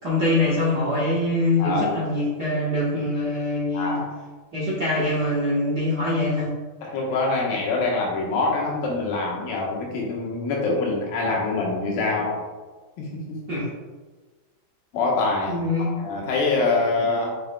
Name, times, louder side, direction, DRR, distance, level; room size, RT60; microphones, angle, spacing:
voice 1, 0.0-4.0 4.5-6.5 13.5-13.7 15.5-15.9, left 1 dB, 75° right, -8 dB, 0.9 m, -23 dB
voice 2, 1.6-1.9 3.7-4.1 6.8-12.4 13.0-13.4 14.9-17.3, left 3 dB, 80° left, -2 dB, 3.1 m, -25 dB
7.2 x 6.4 x 2.3 m, 1.3 s
omnidirectional pair, 4.1 m